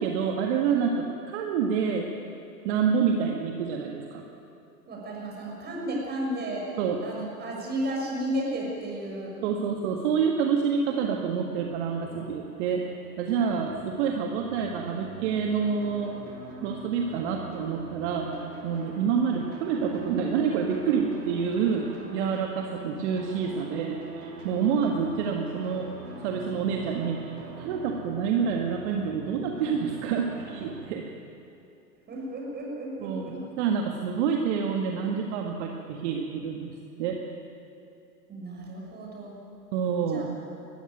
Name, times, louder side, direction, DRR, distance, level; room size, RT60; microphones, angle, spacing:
voice 1, 0.0-2.1 2.6-4.2 6.8-7.0 9.4-12.8 13.2-16.2 16.6-25.9 26.2-31.1 33.0-33.3 33.6-37.2 39.7-40.3, right 6 dB, 45° right, 2 dB, 1.8 m, -28 dB
voice 2, 4.8-6.7 7.0-9.3 32.1-33.4 38.3-39.3 40.1-40.2, right 1 dB, 20° right, -2 dB, 6.6 m, -33 dB
sound 1, 12.0-30.9, right 2 dB, 90° right, 3.1 m, -43 dB
20.0 x 14.5 x 9.3 m, 2.7 s
hypercardioid pair, 120°, 48 cm